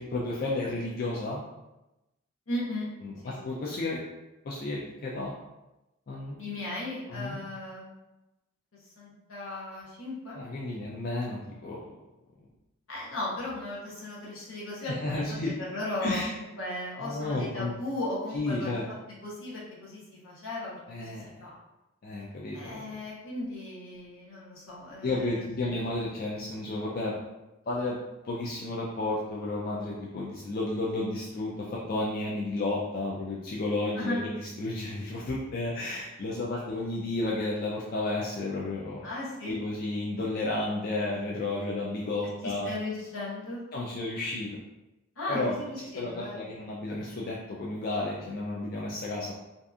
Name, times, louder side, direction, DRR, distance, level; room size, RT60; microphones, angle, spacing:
voice 1, 0.0-1.4 3.0-4.0 4.4-5.3 6.1-6.4 7.1-7.4 10.3-11.8 14.8-15.5 16.0-16.3 17.0-17.7 18.3-18.8 20.9-21.5 22.0-22.9 25.0-27.1 27.7-28.0 28.2-39.1 39.4-42.7 43.7-44.6 45.3-45.6 46.0-49.3, left 2 dB, 45° left, -4 dB, 0.3 m, -32 dB
voice 2, 2.5-2.9 3.2-3.4 6.4-7.9 9.0-10.4 12.9-18.8 19.2-21.5 22.5-25.6 33.9-34.2 39.0-39.6 42.4-43.6 45.2-46.5, left 1 dB, 75° left, -5 dB, 0.8 m, -36 dB
2.6 x 2.4 x 2.3 m, 0.98 s
head